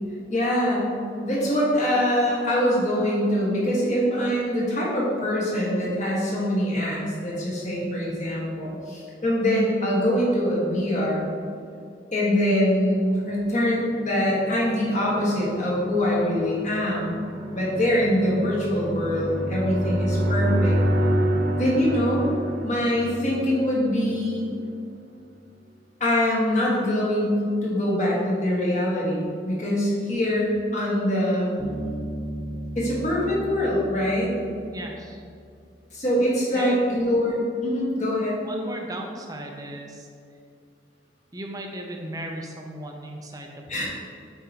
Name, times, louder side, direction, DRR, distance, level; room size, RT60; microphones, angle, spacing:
voice 1, 0.3-11.3 12.1-17.2 17.5-20.8 21.6-22.3 22.6-24.4 26.0-31.5 32.7-34.3 35.9-38.4 43.7-43.8, equal, 40° left, -5 dB, 1.4 m, -24 dB
sound 1, 13.7-24.5, equal, 70° right, 0.7 m, -28 dB
Bass guitar, 31.6-35.3, right 1 dB, 10° left, 1.2 m, -35 dB
voice 2, 34.7-35.2 36.5-37.0 38.4-40.1 41.3-43.8, right 1 dB, 20° right, 2 dB, 0.5 m, -37 dB
7.3 x 4.5 x 2.9 m, 2.4 s
head